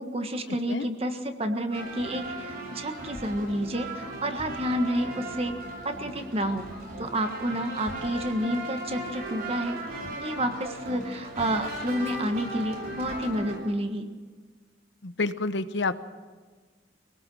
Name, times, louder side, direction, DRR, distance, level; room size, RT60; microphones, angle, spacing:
voice 1, 0.0-5.5 5.8-9.8 10.2-14.1, equal, 35° right, 6 dB, 1.6 m, -30 dB
sound 1, 1.7-13.6, right 1 dB, 55° right, 6.8 m, -37 dB
voice 2, 15.0-15.9, left 3 dB, 75° left, 11 dB, 1.0 m, -28 dB
24.5 x 18.5 x 6.4 m, 1.4 s
head